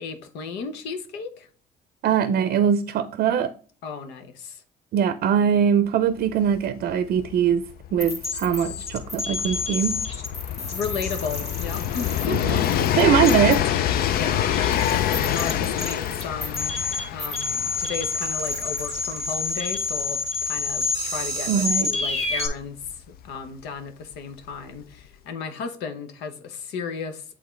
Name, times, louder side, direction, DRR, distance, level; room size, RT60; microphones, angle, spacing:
voice 1, 0.0-1.5 3.8-4.6 10.6-12.6 14.1-14.6 15.0-16.8 17.1-22.8 23.2-27.2, left 5 dB, 90° left, 1.0 m, -34 dB
voice 2, 2.0-3.5 4.9-7.6 7.9-10.0 12.3-12.6 13.0-13.6 21.5-21.9, right 8 dB, 60° right, 0.5 m, -22 dB
Train, 6.3-6.4 6.5-23.2 24.1-24.2, left 11 dB, 65° left, 0.5 m, -27 dB
sound 1, 8.0-22.5, left 3 dB, 40° left, 1.6 m, -29 dB
8.1 x 3.7 x 3.2 m
cardioid pair, 110°, 17 cm